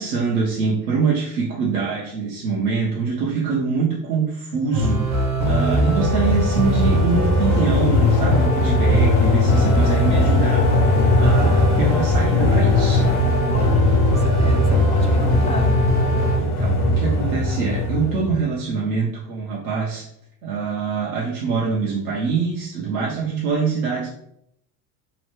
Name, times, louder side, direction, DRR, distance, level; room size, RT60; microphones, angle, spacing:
voice 1, 0.0-5.2 5.4-10.7 11.2-13.2 16.4-20.1 20.4-24.1, right 5 dB, 90° right, -3 dB, 0.7 m, -24 dB
sound 1, 4.7-16.4, left 1 dB, 60° right, 1.0 m, -22 dB
sound 2, 5.4-18.4, left 1 dB, 60° left, 0.7 m, -20 dB
voice 2, 13.5-15.8, left 1 dB, 15° left, 3 dB, 0.3 m, -34 dB
2.9 x 2.1 x 3.1 m, 0.74 s
hypercardioid pair, 80°, 44 cm